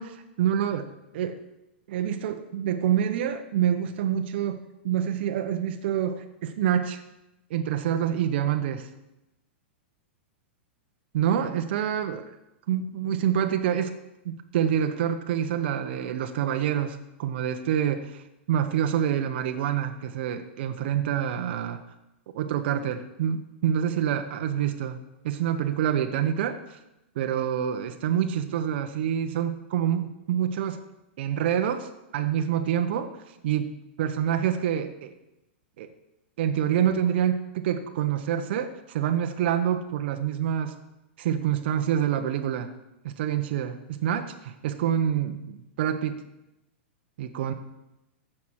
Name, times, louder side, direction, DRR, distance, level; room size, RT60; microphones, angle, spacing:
voice 1, 0.0-1.4 1.9-7.0 7.5-8.9 11.1-12.2 12.7-13.9 14.2-18.2 18.5-21.8 22.3-26.8 27.1-30.8 31.2-35.1 35.8-35.9 36.4-40.8 41.2-42.7 43.0-46.2 47.2-47.5, right 9 dB, 60° right, 7 dB, 0.9 m, -27 dB
15.0 x 5.9 x 4.8 m, 0.91 s
hypercardioid pair, 110°, 6 cm